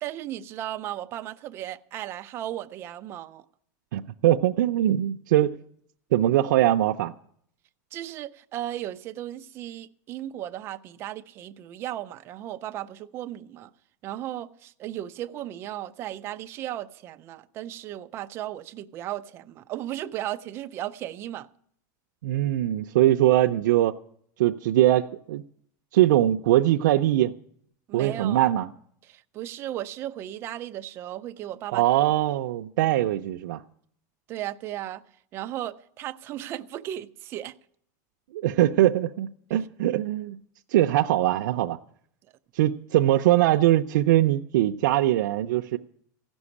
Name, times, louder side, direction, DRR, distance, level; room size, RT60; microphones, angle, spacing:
voice 1, 0.0-3.4 7.9-13.7 14.0-21.5 27.9-28.5 29.1-31.8 34.3-35.0 35.3-37.5, right 13 dB, 25° right, 0.4 m, -35 dB
voice 2, 3.9-5.5 6.1-7.1 22.2-24.0 24.4-25.4 25.9-27.3 27.9-28.7 31.7-33.6 38.3-40.4 40.7-41.8 42.5-45.8, right 14 dB, 85° right, 0.5 m, -22 dB
15.5 x 6.2 x 9.7 m
supercardioid pair, 175°, 10 cm